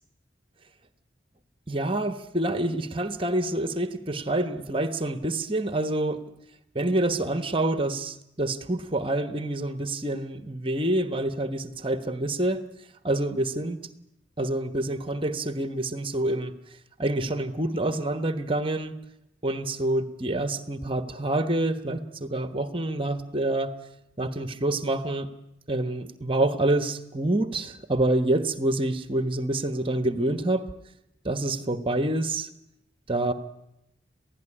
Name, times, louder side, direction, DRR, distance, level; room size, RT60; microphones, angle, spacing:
voice 1, 1.7-6.2 6.7-12.6 13.0-13.8 14.4-16.5 17.0-18.9 19.4-23.7 24.2-25.3 25.7-30.6 31.2-32.5 33.1-33.3, right 1 dB, 30° right, 10 dB, 1.2 m, -27 dB
28.0 x 16.5 x 10.0 m, 0.86 s
head